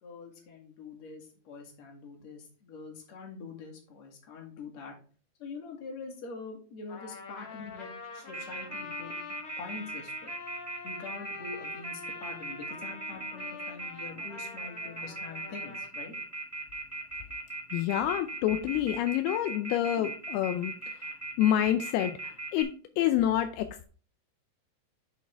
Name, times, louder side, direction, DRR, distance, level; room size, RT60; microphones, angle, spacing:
voice 1, 0.0-4.9 5.4-9.1 9.6-10.3 10.8-16.1, left 4 dB, 50° left, 1 dB, 3.0 m, -44 dB
Trumpet, 6.9-15.9, left 4 dB, 65° left, 1.4 m, -45 dB
Telephone, 8.3-22.6, right 3 dB, 5° right, 1.8 m, -38 dB
voice 2, 17.7-21.0 21.4-22.7 23.0-23.9, left 11 dB, 85° left, 8 dB, 2.5 m, -28 dB
8.3 x 6.7 x 3.4 m, 0.40 s
omnidirectional pair, 4.5 m